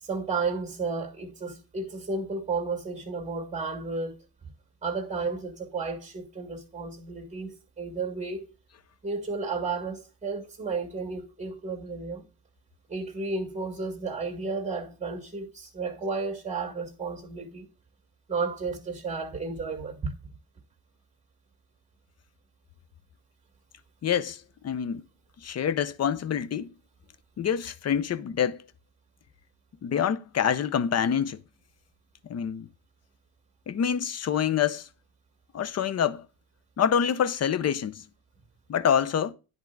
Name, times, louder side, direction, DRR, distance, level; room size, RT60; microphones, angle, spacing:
voice 1, 0.0-4.2 4.8-8.5 9.0-12.2 12.9-17.7 18.3-20.1, right 4 dB, 15° right, 2.1 m, -32 dB
voice 2, 24.0-25.0 25.4-26.7 27.4-28.6 29.8-31.4 32.3-32.7 33.7-34.9 35.5-36.3 36.8-38.0 38.7-39.3, left 8 dB, 40° left, 0.6 m, -26 dB
10.5 x 3.6 x 5.9 m
cardioid pair, 110°, 41 cm